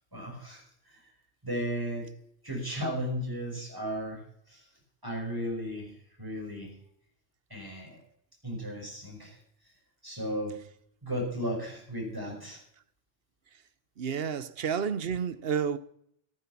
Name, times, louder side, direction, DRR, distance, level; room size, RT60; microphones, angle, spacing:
voice 1, 0.1-1.1 1.4-2.1 2.4-4.7 5.0-6.8 7.5-8.0 8.4-9.7 10.0-10.6 11.0-12.6, equal, 20° right, 5.9 m, -35 dB
voice 2, 14.0-15.8, right 7 dB, 70° right, 1.0 m, -30 dB
13.5 x 13.0 x 6.0 m
omnidirectional pair, 1.1 m